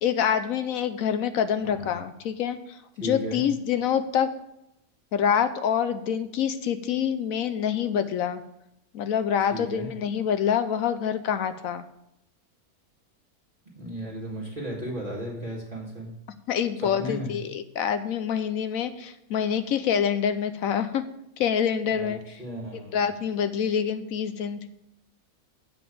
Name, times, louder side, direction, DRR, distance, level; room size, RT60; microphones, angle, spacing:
voice 1, 0.0-4.3 5.1-8.4 8.9-11.8 16.5-21.0 21.4-22.2 22.7-24.7, left 8 dB, 70° left, 11 dB, 1.0 m, -26 dB
voice 2, 1.6-1.9 3.0-3.4 9.5-9.9 13.8-16.1 16.8-17.3 21.9-23.0, equal, 35° right, -3 dB, 1.8 m, -35 dB
7.8 x 5.2 x 7.6 m, 0.81 s
omnidirectional pair, 1.6 m